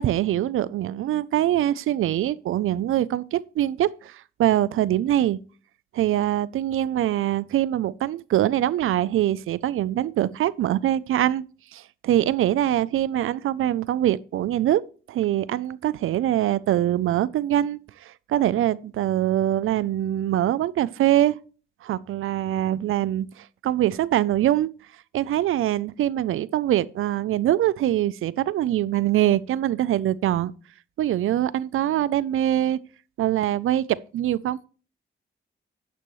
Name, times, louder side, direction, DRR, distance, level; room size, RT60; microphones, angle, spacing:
voice 1, 0.0-5.4 5.9-11.4 11.7-14.8 15.1-21.4 21.8-24.7 25.1-30.5 31.0-32.8 33.2-34.6, right 12 dB, 90° right, 0.5 m, -23 dB
11.5 x 9.0 x 3.1 m
wide cardioid pair, 130°, 21 cm